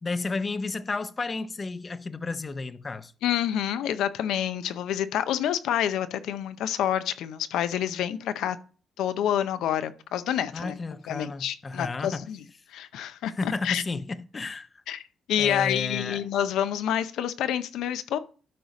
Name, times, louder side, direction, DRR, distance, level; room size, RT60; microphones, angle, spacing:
voice 1, 0.0-3.1 10.5-12.3 13.4-14.8 15.4-16.3, left 3 dB, 35° left, 0.6 m, -32 dB
voice 2, 3.2-8.6 9.0-10.8 11.1-12.4 12.7-13.8 14.9-15.0 15.3-18.2, left 10 dB, 80° left, 0.5 m, -28 dB
12.0 x 4.9 x 4.0 m
cardioid pair, 80°, 0 cm